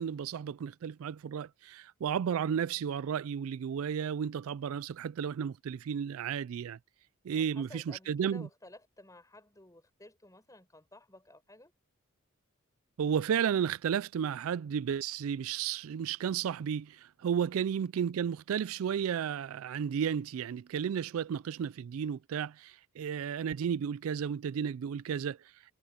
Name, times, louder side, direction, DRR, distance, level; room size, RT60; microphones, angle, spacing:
voice 1, 0.0-6.8 7.2-8.5 13.0-25.4, right 8 dB, 70° right, 0.3 m, -33 dB
voice 2, 7.4-11.7 21.2-21.4, left 1 dB, 15° left, 4.8 m, -54 dB
head